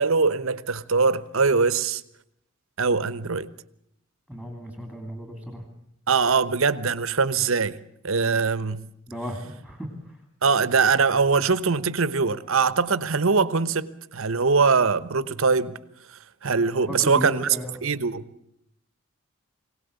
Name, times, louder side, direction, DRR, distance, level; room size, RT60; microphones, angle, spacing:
voice 1, 0.0-2.0 2.8-3.5 6.1-7.8 8.0-8.9 10.4-15.8 16.4-17.5 17.8-18.3, right 4 dB, 70° right, 1.0 m, -22 dB
voice 2, 4.3-5.6 9.1-10.2 16.9-17.7, equal, 10° left, 2.9 m, -35 dB
24.0 x 18.0 x 8.2 m
head